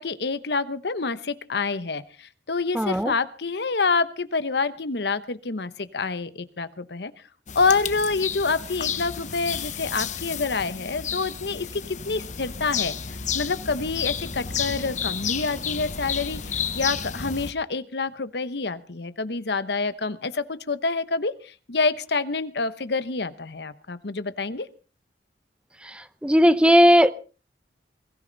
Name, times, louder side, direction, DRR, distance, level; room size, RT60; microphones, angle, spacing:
voice 1, 0.0-7.1 7.5-13.0 13.3-24.7, left 4 dB, 65° left, 1.0 m, -27 dB
voice 2, 2.7-3.1 26.2-27.1, equal, 5° right, 0.7 m, -16 dB
sound 1, 7.5-17.5, left 7 dB, 45° left, 1.0 m, -31 dB
22.0 x 14.5 x 4.0 m
head